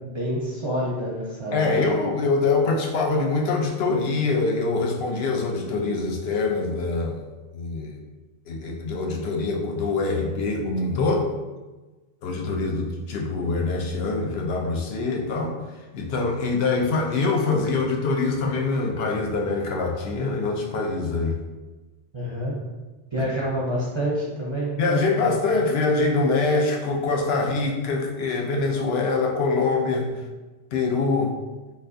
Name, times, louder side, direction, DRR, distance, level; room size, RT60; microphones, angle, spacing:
voice 1, 0.1-1.9 22.1-22.6 23.1-25.4, equal, 35° right, -5 dB, 0.5 m, -28 dB
voice 2, 1.5-7.2 7.5-8.0 8.5-11.3 12.2-15.5 15.9-21.4 23.2-23.3 24.8-30.2 30.7-31.4, left 3 dB, 75° left, 1 dB, 0.8 m, -24 dB
3.9 x 2.6 x 2.5 m, 1.2 s
omnidirectional pair, 1.1 m